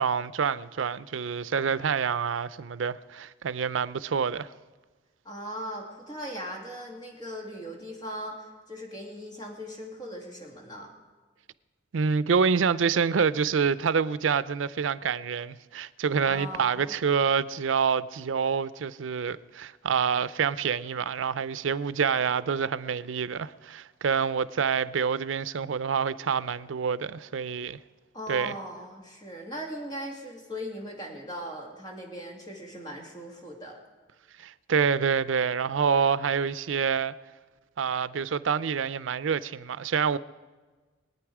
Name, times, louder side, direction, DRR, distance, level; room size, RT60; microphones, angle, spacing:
voice 1, 0.0-4.5 11.9-27.8 28.3-28.5 34.4-37.1 37.8-40.2, right 6 dB, 90° right, 0.5 m, -27 dB
voice 2, 5.2-10.9 16.2-16.9 28.1-33.8, equal, 20° left, 2.6 m, -39 dB
23.0 x 9.3 x 4.9 m
head